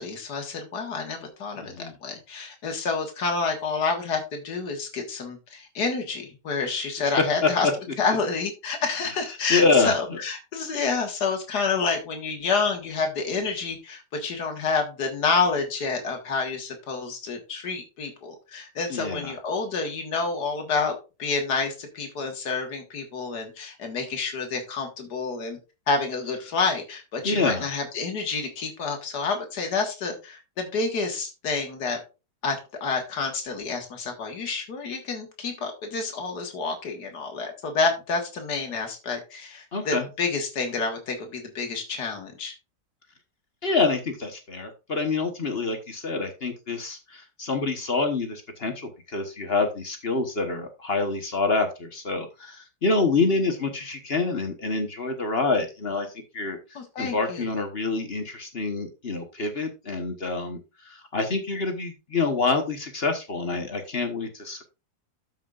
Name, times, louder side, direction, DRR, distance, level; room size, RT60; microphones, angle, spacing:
voice 1, 0.0-7.7 8.0-20.9 21.2-25.6 25.9-32.0 32.4-42.5 56.8-57.5, left 4 dB, 80° left, 4 dB, 2.1 m, -28 dB
voice 2, 1.6-1.9 7.4-7.7 9.0-9.2 9.5-10.2 18.9-19.3 27.2-27.7 39.7-40.1 43.6-56.1 56.3-56.6 57.0-64.6, left 3 dB, 40° left, 5 dB, 1.3 m, -26 dB
13.0 x 5.7 x 2.5 m, 0.28 s
omnidirectional pair, 1.7 m